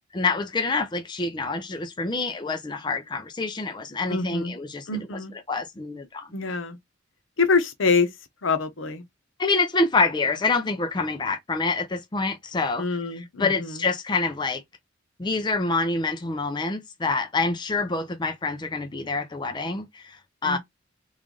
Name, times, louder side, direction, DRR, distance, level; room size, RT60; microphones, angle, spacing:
voice 1, 0.1-4.9 5.5-6.3 9.4-12.8 13.4-14.6 15.2-20.6, left 3 dB, 25° left, 0.5 m, -26 dB
voice 2, 4.1-4.5 4.9-5.3 6.3-6.8 7.4-8.1 8.4-9.0 12.8-13.9 20.4-20.6, left 4 dB, 80° left, 0.8 m, -25 dB
3.2 x 2.4 x 3.8 m
head